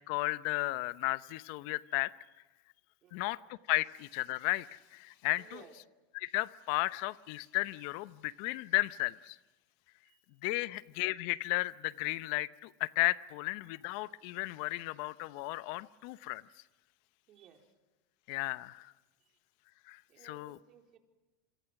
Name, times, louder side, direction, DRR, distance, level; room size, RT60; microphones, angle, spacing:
voice 1, 0.0-2.1 3.1-3.4 3.7-5.6 6.1-9.4 10.4-16.4 18.3-18.9 19.9-20.6, left 21 dB, 65° left, 17 dB, 0.8 m, -34 dB
voice 2, 3.0-3.4 5.4-5.7 10.0-10.2 10.5-10.7 17.3-17.7 19.2-19.4 20.1-21.0, right 9 dB, 45° right, 3 dB, 4.1 m, -58 dB
27.0 x 26.0 x 6.0 m, 1.2 s
hypercardioid pair, 100°, 0 cm